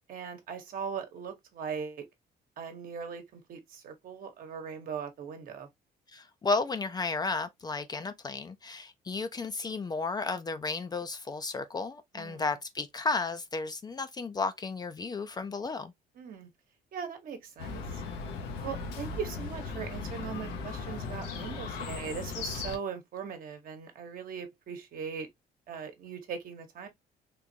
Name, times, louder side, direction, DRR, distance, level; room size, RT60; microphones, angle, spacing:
voice 1, 0.1-2.1 2.6-5.7 12.1-12.5 16.2-16.5 16.9-18.0 18.6-25.3 25.7-26.9, right 6 dB, 55° right, 1.1 m, -39 dB
voice 2, 6.1-15.9, left 3 dB, 25° left, 0.5 m, -33 dB
Chirp tweet, 17.6-22.8, left 4 dB, 90° left, 1.0 m, -37 dB
3.7 x 2.5 x 2.8 m
cardioid pair, 110°, 17 cm